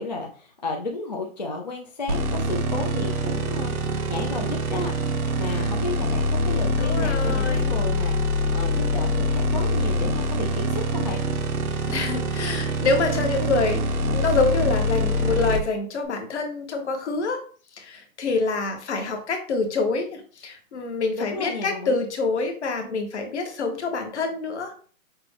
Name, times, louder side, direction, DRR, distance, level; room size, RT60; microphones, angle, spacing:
voice 1, 0.0-4.9 5.4-8.2 8.5-11.2 21.2-22.0, left 3 dB, 35° left, 0 dB, 0.4 m, -33 dB
sound 1, 2.1-15.6, equal, 90° right, 1.1 m, -24 dB
voice 2, 6.8-7.8 11.9-17.4 17.7-24.7, left 3 dB, 50° left, 5 dB, 1.2 m, -26 dB
5.8 x 2.2 x 3.2 m, 0.42 s
hypercardioid pair, 165°, 42 cm